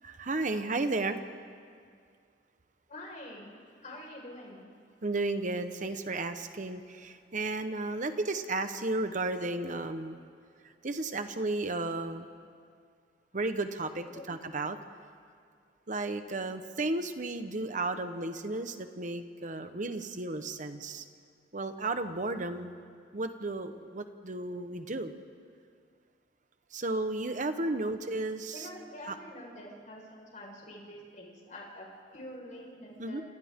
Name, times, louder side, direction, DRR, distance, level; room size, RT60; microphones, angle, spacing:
voice 1, 0.0-1.2 5.0-10.2 10.8-12.3 13.3-14.8 15.9-21.0 21.5-22.7 23.1-25.1 26.7-28.7 29.1-29.2 33.0-33.2, right 2 dB, 45° right, 8 dB, 1.1 m, -33 dB
voice 2, 2.9-3.5 3.8-4.7 14.0-14.3 27.6-27.8 28.5-31.9 32.1-33.2, left 1 dB, 45° left, -1 dB, 5.2 m, -46 dB
29.0 x 27.5 x 3.8 m, 2.1 s
head